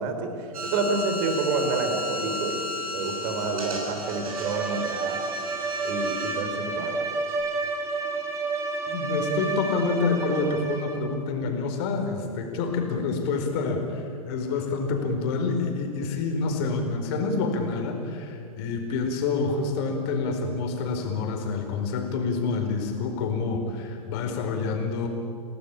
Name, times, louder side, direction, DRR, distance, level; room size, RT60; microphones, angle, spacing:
voice 1, 0.0-5.2 5.8-6.9, right 4 dB, 40° right, 5 dB, 4.0 m, -29 dB
sound 1, 0.5-6.4, left 2 dB, 70° right, 6.5 m, -34 dB
Bowed string instrument, 4.0-11.1, right 3 dB, 15° right, 3.3 m, -30 dB
voice 2, 8.9-25.1, left 4 dB, 40° left, 4 dB, 4.8 m, -27 dB
28.0 x 19.0 x 8.8 m, 2.4 s
figure-of-eight pair, 105°, 19 cm